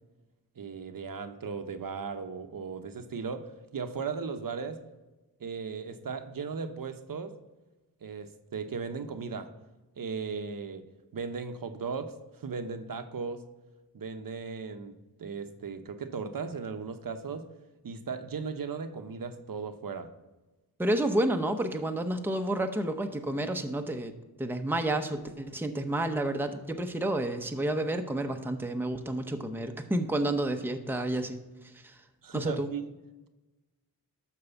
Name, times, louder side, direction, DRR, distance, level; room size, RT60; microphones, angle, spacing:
voice 1, 0.6-4.8 5.4-7.3 8.0-9.5 10.0-10.8 11.1-13.4 13.9-14.9 15.2-17.5 17.8-20.1 32.2-32.9, right 5 dB, 55° right, 8 dB, 0.9 m, -37 dB
voice 2, 20.8-24.1 24.4-31.4 31.8-32.0 32.3-32.7, right 1 dB, 5° right, 6 dB, 0.8 m, -30 dB
12.5 x 4.6 x 7.0 m, 1.1 s
wide cardioid pair, 120°, 40 cm